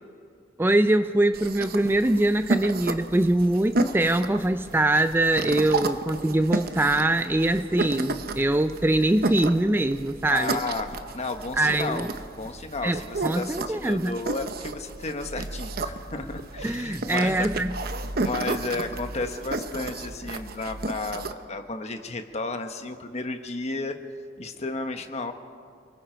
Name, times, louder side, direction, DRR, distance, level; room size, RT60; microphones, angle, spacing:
voice 1, 0.6-10.6 11.6-12.1 12.8-14.1 16.6-17.7, right 1 dB, 10° right, 10 dB, 0.4 m, -23 dB
sound 1, 1.3-21.3, right 2 dB, 50° right, 1.0 m, -32 dB
voice 2, 10.3-12.1 12.4-17.5 17.8-17.9 18.2-23.9 24.4-25.3, left 3 dB, 35° left, 7 dB, 1.2 m, -33 dB
29.0 x 20.0 x 4.5 m, 2.2 s
head